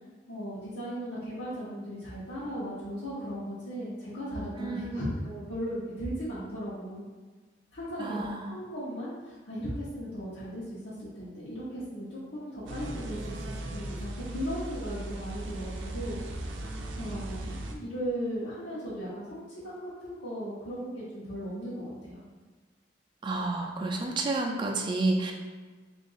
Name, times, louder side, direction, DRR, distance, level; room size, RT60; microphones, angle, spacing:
voice 1, 0.3-7.1 7.7-16.2 17.0-22.2, equal, 85° left, -11 dB, 0.9 m, -37 dB
voice 2, 4.6-5.1 8.0-8.5 23.2-25.3, right 2 dB, 25° right, 1 dB, 0.3 m, -30 dB
sound 1, 12.7-17.8, right 1 dB, 85° right, 0.4 m, -37 dB
2.8 x 2.5 x 3.9 m, 1.4 s
head